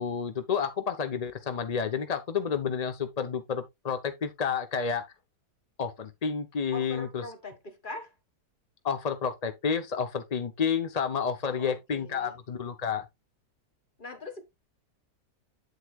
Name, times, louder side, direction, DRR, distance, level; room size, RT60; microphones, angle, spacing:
voice 1, 0.0-5.0 5.8-7.2 8.8-13.1, left 6 dB, 45° left, 0.5 m, -30 dB
voice 2, 6.7-8.1 11.4-12.4 14.0-14.4, left 2 dB, 30° left, 1.7 m, -42 dB
8.5 x 8.0 x 2.3 m
omnidirectional pair, 1.8 m